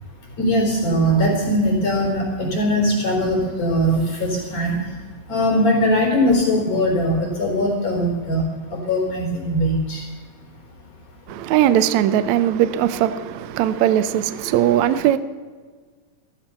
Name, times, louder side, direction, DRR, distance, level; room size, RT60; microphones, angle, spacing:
voice 1, 0.4-4.9 5.3-8.4 8.7-10.0, equal, 50° left, 5.3 m, -20 dB
voice 2, 11.3-15.2, right 11 dB, 80° right, 1.6 m, -19 dB
14.5 x 13.0 x 5.7 m
omnidirectional pair, 3.9 m